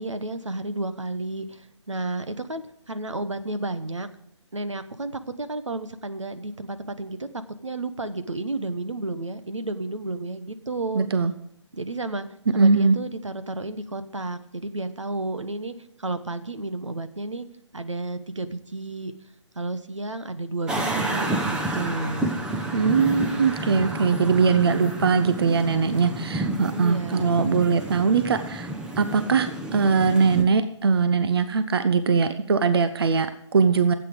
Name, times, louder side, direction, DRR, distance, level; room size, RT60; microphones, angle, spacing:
voice 1, 0.0-2.6 2.9-4.1 4.5-7.3 7.6-11.1 11.7-12.3 12.5-17.4 17.7-19.1 19.5-22.3 26.7-27.4, right 2 dB, 80° right, 10 dB, 1.1 m, -32 dB
voice 2, 10.9-11.3 12.5-13.0 22.7-28.7 29.0-33.9, right 5 dB, 55° right, 10 dB, 0.8 m, -21 dB
sound 1, 20.7-30.4, right 1 dB, 5° right, 0.8 m, -30 dB
13.0 x 8.4 x 5.0 m, 0.76 s
figure-of-eight pair, 145°, 16 cm